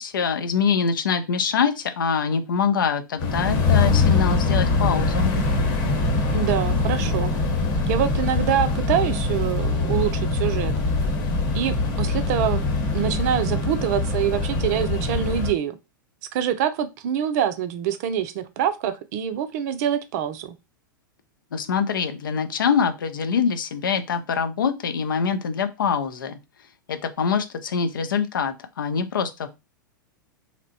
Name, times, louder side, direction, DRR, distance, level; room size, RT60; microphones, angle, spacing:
voice 1, 0.0-5.4 21.5-26.4 26.9-29.5, left 6 dB, 75° left, 8 dB, 0.5 m, -24 dB
sound 1, 3.2-15.5, left 3 dB, 45° left, 1.0 m, -23 dB
voice 2, 6.3-7.3 7.9-10.7 11.5-12.6 12.9-15.8 16.3-20.6, right 9 dB, 50° right, 11 dB, 0.4 m, -25 dB
2.8 x 2.0 x 2.7 m, 0.25 s
figure-of-eight pair, 100°, 11 cm